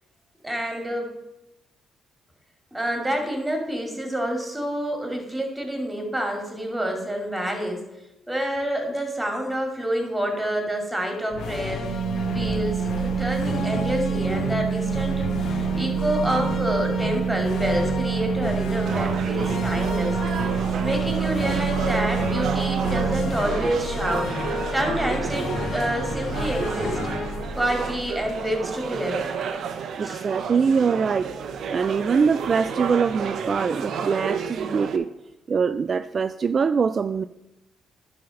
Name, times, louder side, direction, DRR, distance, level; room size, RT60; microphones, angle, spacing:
voice 1, 0.4-1.1 2.7-7.8 8.3-11.9 12.2-20.1 20.8-24.3 24.7-27.0 27.5-29.2 30.0-30.2, equal, 10° right, 2 dB, 2.5 m, -28 dB
sound 1, 11.3-28.7, left 1 dB, 75° left, 1.5 m, -30 dB
sound 2, 11.8-23.3, right 8 dB, 30° left, 2.4 m, -27 dB
sound 3, 18.9-35.0, right 6 dB, 70° right, 0.8 m, -32 dB
voice 2, 30.0-31.3 31.7-35.1 35.5-37.2, right 5 dB, 45° right, 11 dB, 0.3 m, -23 dB
11.0 x 4.2 x 6.5 m, 0.93 s
cardioid pair, 90°, 0 cm